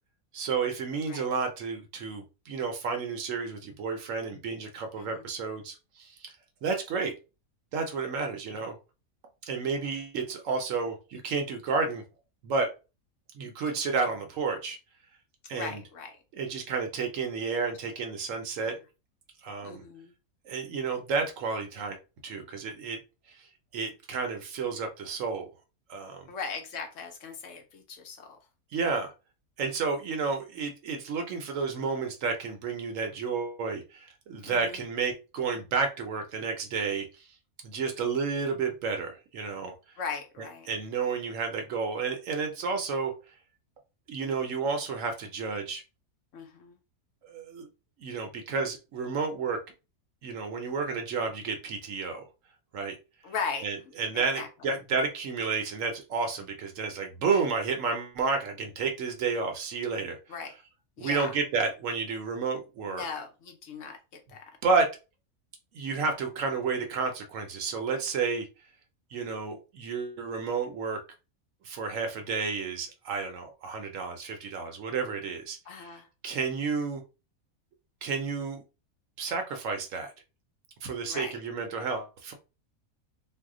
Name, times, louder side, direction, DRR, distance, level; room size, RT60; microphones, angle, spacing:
voice 1, 0.3-6.3 6.6-7.1 7.7-8.8 9.4-12.0 12.4-12.7 13.3-14.8 15.5-15.8 16.3-18.8 19.4-19.8 20.5-22.0 22.2-23.0 23.4-23.5 23.7-25.5 25.9-26.3 28.7-29.1 29.6-37.2 37.6-39.7 40.7-43.1 44.1-45.8 47.2-47.7 48.0-49.6 50.2-52.2 52.7-52.9 53.6-60.2 61.0-63.0 64.6-64.9 65.7-68.5 69.1-71.0 71.6-75.9 76.2-77.0 78.0-78.6 79.2-80.1 80.8-82.3, right 5 dB, 65° right, 5 dB, 0.9 m, -31 dB
voice 2, 15.5-16.1 18.6-18.7 19.6-20.1 26.3-28.4 34.5-34.8 40.0-40.7 46.3-46.8 53.2-53.7 54.1-54.5 60.3-60.5 61.0-61.3 62.9-64.0 64.3-64.4 75.7-76.1 81.1-81.3, left 5 dB, 65° left, 4 dB, 0.9 m, -38 dB
2.7 x 2.1 x 3.6 m, 0.30 s
omnidirectional pair, 1.5 m